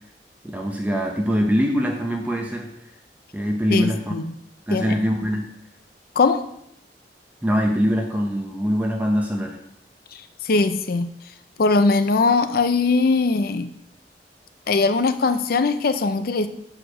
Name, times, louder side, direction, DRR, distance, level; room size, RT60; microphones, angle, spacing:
voice 1, 0.4-2.7 3.3-4.1 4.7-5.5 7.4-9.6, equal, 10° right, 1 dB, 0.7 m, -23 dB
voice 2, 3.7-4.3 4.7-5.0 6.2-6.4 10.1-11.1 11.6-13.7 14.7-16.5, left 3 dB, 55° left, 10 dB, 0.5 m, -20 dB
6.3 x 5.0 x 6.2 m, 0.75 s
head